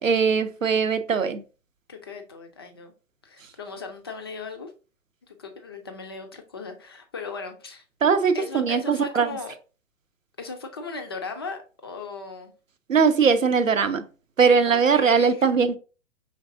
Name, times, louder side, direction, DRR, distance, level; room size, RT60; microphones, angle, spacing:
voice 1, 0.0-1.4 8.0-9.4 12.9-14.0 14.4-15.8, right 5 dB, 85° right, 0.6 m, -20 dB
voice 2, 1.9-2.9 3.2-4.7 5.3-7.8 8.3-9.5 10.4-12.5 14.7-15.4, left 4 dB, 20° left, 0.3 m, -37 dB
5.2 x 3.5 x 2.5 m
figure-of-eight pair, 115°, 39 cm